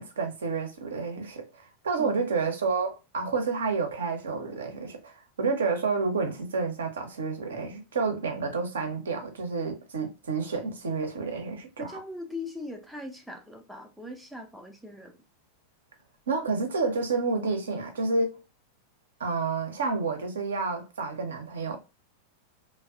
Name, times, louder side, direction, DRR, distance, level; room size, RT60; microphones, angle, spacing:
voice 1, 0.0-12.0 16.3-18.4 19.2-21.8, right 4 dB, 65° right, 0.5 m, -30 dB
voice 2, 11.8-15.2, left 2 dB, ahead, 0.4 m, -40 dB
2.5 x 2.1 x 2.3 m
figure-of-eight pair, 90°, 0 cm